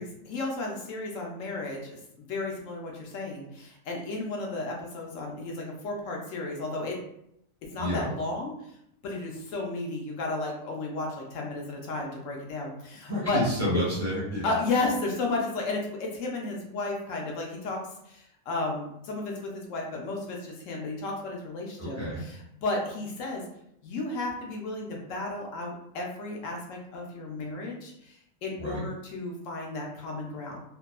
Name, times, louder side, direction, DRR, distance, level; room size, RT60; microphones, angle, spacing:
voice 1, 0.0-7.0 7.7-8.5 9.0-13.4 14.4-17.8 18.1-23.4 23.8-28.1 28.4-30.6, left 2 dB, 70° left, 0 dB, 1.0 m, -33 dB
voice 2, 13.1-14.4 21.8-22.2 28.6-28.8, equal, 10° left, -8 dB, 1.0 m, -29 dB
2.7 x 2.3 x 2.3 m, 0.76 s
omnidirectional pair, 1.4 m